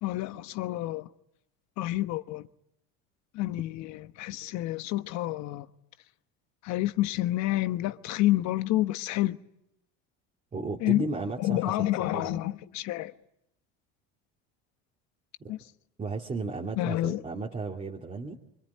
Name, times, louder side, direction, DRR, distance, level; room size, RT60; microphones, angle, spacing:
voice 1, 0.0-1.1 1.8-2.5 3.3-5.7 6.6-9.4 10.8-11.0 11.4-13.1 15.5-15.6 16.8-17.2, left 16 dB, 60° left, 1.2 m, -29 dB
voice 2, 10.5-12.4 15.4-15.5 16.0-18.4, right 3 dB, 25° right, 2.4 m, -35 dB
25.0 x 25.0 x 9.5 m
supercardioid pair, 115°, 31 cm